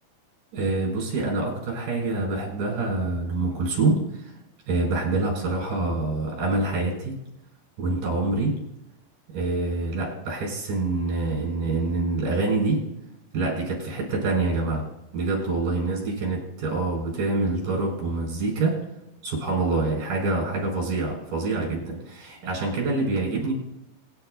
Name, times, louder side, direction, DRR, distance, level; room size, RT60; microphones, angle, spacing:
voice 1, 0.5-4.0 4.7-7.1 7.8-8.5 9.3-12.8 13.3-14.9 15.1-18.8 19.2-23.5, right 3 dB, 50° right, -2 dB, 6.9 m, -26 dB
25.0 x 11.0 x 2.6 m, 0.85 s
omnidirectional pair, 4.8 m